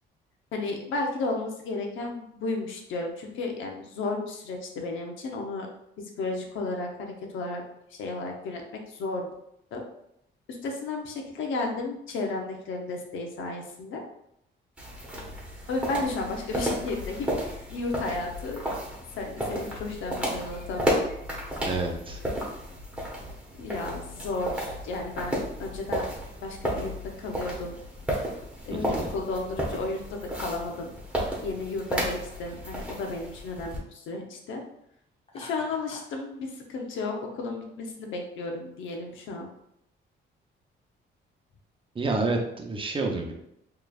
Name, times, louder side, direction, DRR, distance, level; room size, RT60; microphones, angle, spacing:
voice 1, 0.5-5.7 6.0-7.6 7.9-9.3 9.7-9.8 10.6-14.0 15.7-18.7 19.2-21.0 23.6-26.1 26.4-26.9 27.2-27.8 28.7-30.9 31.4-34.6 35.3-39.5, left 3 dB, 80° left, 2 dB, 0.8 m, -33 dB
sound 1, 14.8-33.8, equal, 5° right, 1.3 m, -33 dB
voice 2, 21.7-22.2 28.7-29.1 41.9-43.3, right 3 dB, 25° right, 2 dB, 0.8 m, -29 dB
Laughter, 35.3-36.2, left 1 dB, 30° left, 1.0 m, -46 dB
4.7 x 3.2 x 2.4 m, 0.77 s
cardioid pair, 90°, 20 cm